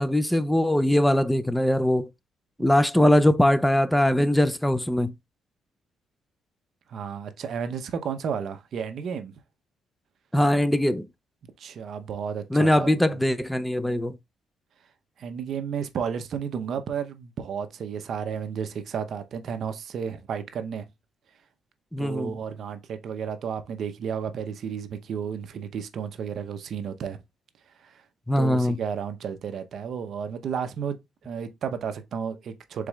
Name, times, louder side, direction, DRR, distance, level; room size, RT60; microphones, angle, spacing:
voice 1, 0.0-2.1 2.6-5.1 10.3-11.1 12.5-14.2 21.9-22.3 28.3-28.8, left 1 dB, 5° left, 0.4 m, -21 dB
voice 2, 6.9-9.3 11.6-13.0 15.2-20.9 22.0-27.2 27.8-28.0 28.4-32.9, right 7 dB, 55° right, 0.7 m, -32 dB
4.8 x 4.0 x 2.3 m
cardioid pair, 125°, 0 cm